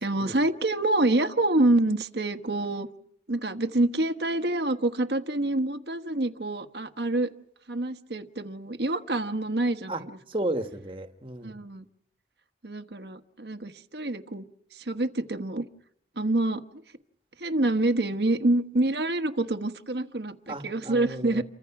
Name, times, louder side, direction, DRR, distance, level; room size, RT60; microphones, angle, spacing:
voice 1, 0.0-2.9 3.3-7.3 7.7-10.2 11.4-11.8 12.6-14.4 14.7-15.7 16.2-16.6 17.4-21.4, right 2 dB, 70° right, 1.3 m, -27 dB
voice 2, 10.3-11.6 20.5-21.4, right 1 dB, 30° right, 1.5 m, -33 dB
29.0 x 24.5 x 6.0 m
head